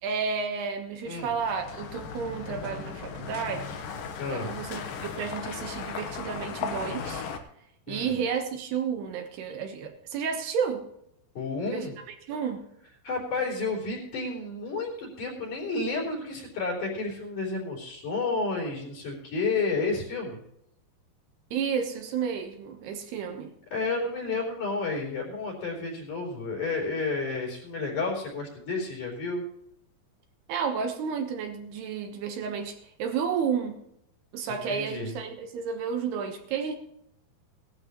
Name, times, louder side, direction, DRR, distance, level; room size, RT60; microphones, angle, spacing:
voice 1, 0.0-3.8 4.3-7.2 7.9-10.8 11.7-11.9 12.3-12.6 21.5-23.5 30.5-33.8 34.3-36.8, right 6 dB, 70° right, 5 dB, 3.1 m, -31 dB
sound 1, 1.1-7.4, left 6 dB, 65° left, 2.4 m, -37 dB
voice 2, 4.2-4.6 7.9-8.2 11.4-11.9 13.0-20.4 23.7-29.4 34.5-35.1, left 3 dB, 50° left, -2 dB, 5.2 m, -31 dB
18.0 x 12.5 x 3.1 m, 0.74 s
omnidirectional pair, 5.0 m